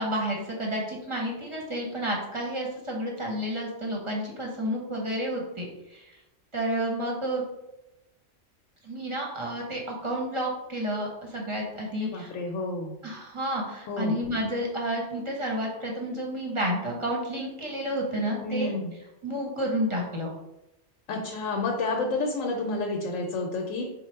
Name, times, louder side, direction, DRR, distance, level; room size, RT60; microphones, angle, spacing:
voice 1, 0.0-6.2 6.5-7.4 8.8-12.3 13.0-18.7 19.2-20.3, equal, 30° right, -2 dB, 0.8 m, -30 dB
voice 2, 12.0-12.9 13.9-14.2 18.4-18.9 21.1-23.8, left 3 dB, 85° left, 1 dB, 1.0 m, -30 dB
4.2 x 2.1 x 4.2 m, 0.91 s
omnidirectional pair, 1.3 m